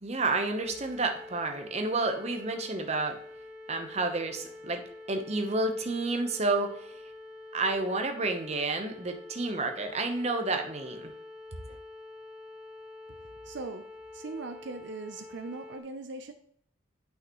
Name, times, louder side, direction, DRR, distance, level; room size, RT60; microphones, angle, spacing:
voice 1, 0.0-3.2 3.7-4.8 5.1-6.9 7.5-11.1, right 3 dB, 35° right, 5 dB, 0.9 m, -30 dB
sound 1, 0.6-15.8, left 2 dB, 5° right, 0.6 m, -47 dB
voice 2, 13.5-13.8 14.1-16.3, right 3 dB, 70° right, 7 dB, 0.6 m, -39 dB
8.9 x 5.7 x 3.0 m, 0.68 s
head